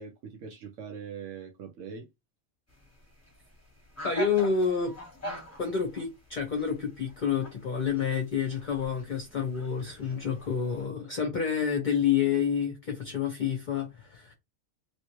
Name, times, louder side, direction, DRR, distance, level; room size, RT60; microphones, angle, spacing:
voice 1, 0.0-2.1, right 6 dB, 90° right, 1.0 m, -42 dB
sound 1, 2.7-10.9, equal, 15° left, 1.2 m, -45 dB
voice 2, 4.0-4.9 5.6-14.3, left 7 dB, 45° left, 0.8 m, -29 dB
3.2 x 3.0 x 2.9 m
omnidirectional pair, 1.3 m